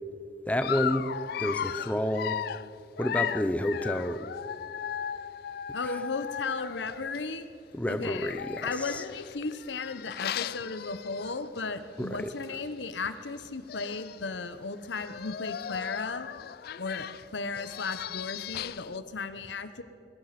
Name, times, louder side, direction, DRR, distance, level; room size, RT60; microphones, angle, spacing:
voice 1, 0.5-1.1 1.4-2.4 3.0-4.3 5.8-6.0 7.7-9.0 12.0-12.3, left 1 dB, 10° left, 9 dB, 0.6 m, -30 dB
Dog, 0.6-7.2 8.0-11.6 12.0-12.2 12.4-12.5 13.4-13.5 13.7-14.2 14.9-19.0, left 9 dB, 55° left, 0.3 m, -36 dB
voice 2, 5.7-7.5 7.9-8.3 8.6-16.3 16.8-19.8, left 4 dB, 80° left, 11 dB, 1.0 m, -35 dB
21.0 x 11.0 x 5.9 m, 2.5 s
head